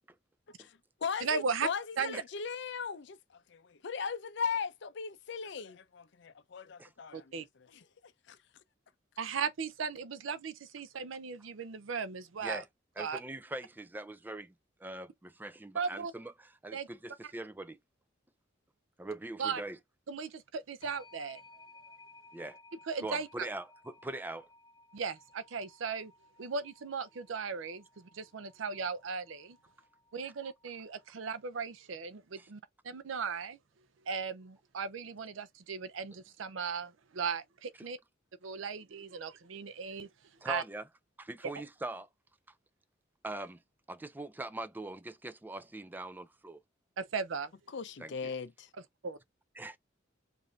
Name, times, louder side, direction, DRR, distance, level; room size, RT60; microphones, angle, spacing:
voice 1, 0.6-7.4 7.7-7.8 8.3-8.4 47.7-48.7, left 6 dB, 65° left, 0.5 m, -38 dB
voice 2, 1.2-1.7 2.0-2.2 7.1-7.5 9.2-12.6 13.0-13.2 15.7-16.1 16.7-16.9 19.4-19.6 20.1-21.4 22.9-23.5 24.9-26.1 26.4-29.6 30.1-33.6 34.1-38.0 38.4-40.1 40.4-40.6 47.0-47.5 49.0-49.2, right 5 dB, 80° right, 0.5 m, -37 dB
voice 3, 13.0-14.5 14.8-17.8 19.0-19.8 22.3-22.6 23.0-24.5 32.4-32.5 40.4-40.9 41.2-42.1 43.2-43.6 43.9-46.6 48.0-48.3 49.6-49.8, right 2 dB, 10° right, 0.4 m, -42 dB
sound 1, 20.8-31.4, left 2 dB, 25° left, 0.9 m, -60 dB
4.9 x 2.6 x 2.6 m
head